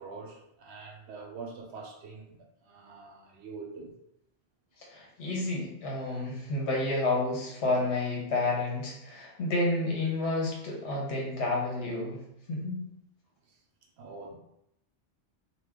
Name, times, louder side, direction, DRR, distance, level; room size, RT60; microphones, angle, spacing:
voice 1, 0.0-4.0 13.5-13.6 14.0-14.3, right 4 dB, 75° right, 1 dB, 0.8 m, -44 dB
voice 2, 4.9-12.2 12.5-12.8, left 2 dB, 75° left, -2 dB, 1.2 m, -30 dB
2.8 x 2.1 x 3.5 m, 0.79 s
omnidirectional pair, 1.2 m